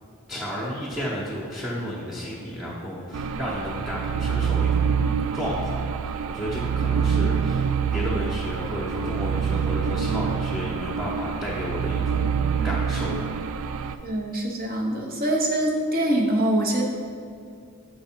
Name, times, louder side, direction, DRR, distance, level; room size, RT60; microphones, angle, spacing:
voice 1, 0.3-4.9 5.3-12.3 12.6-13.3 13.8-13.9, equal, ahead, -7 dB, 1.0 m, -32 dB
sound 1, 3.1-14.0, right 6 dB, 65° right, 0.3 m, -26 dB
voice 2, 14.0-16.8, right 1 dB, 45° right, 0 dB, 1.0 m, -24 dB
6.4 x 4.7 x 4.5 m, 2.4 s
head